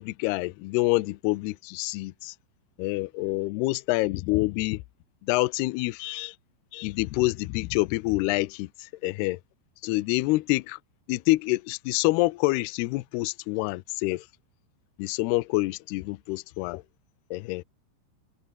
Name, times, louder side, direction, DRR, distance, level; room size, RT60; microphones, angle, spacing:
voice 1, 0.0-2.4 2.8-4.8 5.2-6.4 6.7-9.4 9.8-10.8 11.1-14.3 15.0-16.8 17.3-17.6, left 21 dB, 85° left, 2.4 m, -27 dB
omnidirectional pair, 5.4 m